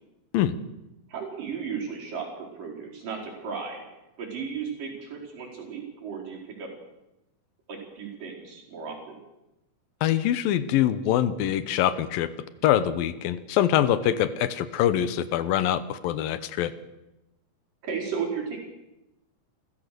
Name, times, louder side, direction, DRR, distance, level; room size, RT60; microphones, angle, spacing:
voice 1, 1.1-3.8 4.2-6.7 7.7-9.2 14.0-14.3 17.8-18.6, right 6 dB, 70° right, -1 dB, 6.3 m, -35 dB
voice 2, 10.0-12.3 12.6-16.7, left 11 dB, 80° left, 14 dB, 2.8 m, -24 dB
28.5 x 15.0 x 6.8 m, 0.93 s
omnidirectional pair, 4.1 m